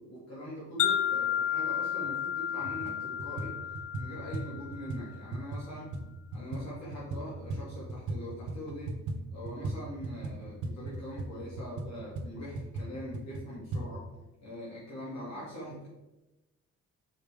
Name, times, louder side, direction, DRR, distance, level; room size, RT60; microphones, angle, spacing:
voice 1, 0.0-3.6 4.0-5.9 6.3-8.9 9.3-14.1 14.4-15.9, equal, 60° left, -6 dB, 2.3 m, -42 dB
Wind chime, 0.8-5.1, left 9 dB, 80° left, 0.6 m, -32 dB
sound 1, 2.0-2.1 2.6-2.9 3.2-8.2 8.5-13.8, right 2 dB, 75° right, 1.1 m, -38 dB
6.4 x 4.9 x 3.6 m, 1.0 s
cardioid pair, 90°, 30 cm